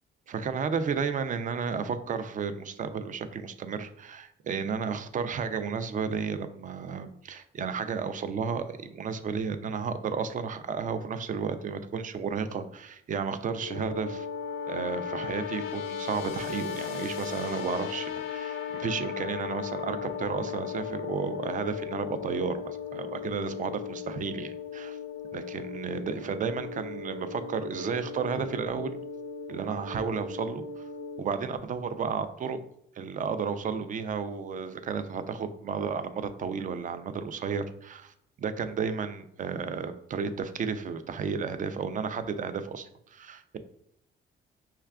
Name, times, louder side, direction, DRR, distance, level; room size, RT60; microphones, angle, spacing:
voice 1, 0.3-14.3 14.7-25.0 25.3-29.0 29.5-30.8 31.2-32.6 33.0-38.1 38.4-43.6, right 6 dB, 40° right, 10 dB, 0.4 m, -33 dB
sound 1, 13.5-31.2, left 7 dB, 90° left, 0.4 m, -37 dB
5.5 x 2.3 x 2.3 m, 0.74 s
cardioid pair, 90°, 20 cm